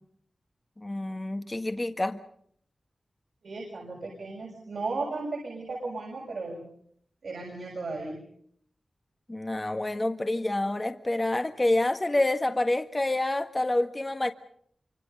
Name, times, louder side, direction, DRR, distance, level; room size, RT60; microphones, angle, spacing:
voice 1, 0.8-2.2 9.3-14.3, left 2 dB, 25° left, 7 dB, 1.6 m, -27 dB
voice 2, 3.4-6.6 7.2-8.2, right 3 dB, 80° right, -1 dB, 6.8 m, -35 dB
26.5 x 26.0 x 5.5 m, 0.65 s
wide cardioid pair, 65°, 0 cm